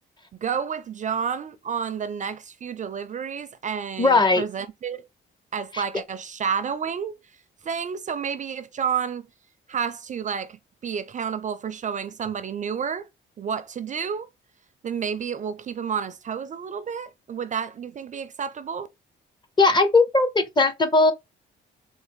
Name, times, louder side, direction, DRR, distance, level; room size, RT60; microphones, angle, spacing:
voice 1, 0.4-5.0 5.5-7.2 7.6-9.2 9.7-13.1 13.4-14.3 14.8-18.9, right 7 dB, 40° right, 0.4 m, -30 dB
voice 2, 4.0-4.5 5.7-5.8 19.6-21.1, left 3 dB, 20° left, 0.6 m, -18 dB
4.0 x 2.0 x 3.3 m
cardioid pair, 90°, 20 cm